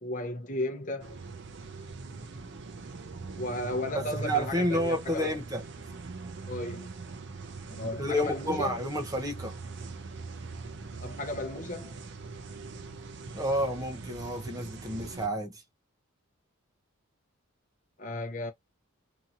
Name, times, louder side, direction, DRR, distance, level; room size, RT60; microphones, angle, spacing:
voice 1, 0.0-1.2 3.4-5.4 6.5-6.9 7.7-8.8 11.0-12.0 18.0-18.5, left 1 dB, 35° left, 0.8 m, -34 dB
sound 1, 1.0-15.3, right 4 dB, 55° right, 0.5 m, -42 dB
voice 2, 3.9-5.6 7.8-9.5 13.3-15.6, equal, 15° right, 0.7 m, -30 dB
2.8 x 2.8 x 2.4 m
head